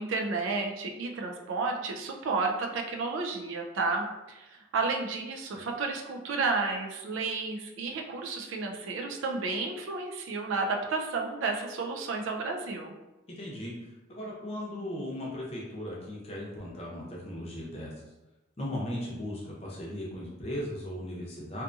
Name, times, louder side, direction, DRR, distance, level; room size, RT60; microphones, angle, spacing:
voice 1, 0.0-12.9, right 3 dB, 75° right, 2 dB, 0.4 m, -32 dB
voice 2, 13.3-13.7 14.1-17.9 18.6-21.6, left 1 dB, 30° left, -4 dB, 0.6 m, -37 dB
2.6 x 2.5 x 2.3 m, 1.0 s
head